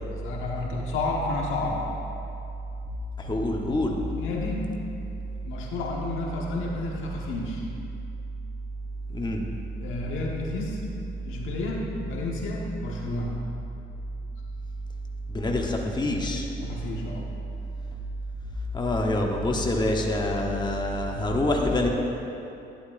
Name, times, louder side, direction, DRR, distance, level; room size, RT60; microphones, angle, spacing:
voice 1, 0.1-1.9 4.1-4.6 5.4-7.7 9.8-10.8 11.2-13.4 16.6-17.3, left 2 dB, 85° left, -2 dB, 1.4 m, -31 dB
voice 2, 3.2-4.0 9.1-9.5 15.3-16.5 18.7-21.9, left 1 dB, 20° left, 1 dB, 1.0 m, -26 dB
11.5 x 10.5 x 2.6 m, 2.8 s
cardioid pair, 90°, 20 cm